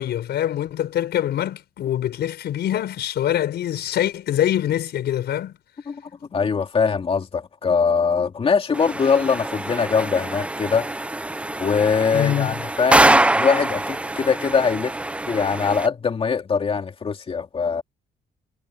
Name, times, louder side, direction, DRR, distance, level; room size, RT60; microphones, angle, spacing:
voice 1, 0.0-5.6 12.1-12.6, left 11 dB, 80° left, 5.2 m, -24 dB
voice 2, 6.3-10.9 11.6-14.9 15.3-17.8, left 5 dB, 35° left, 2.7 m, -22 dB
sound 1, 8.7-15.9, right 2 dB, 5° right, 0.6 m, -23 dB
cardioid pair, 165°, 17 cm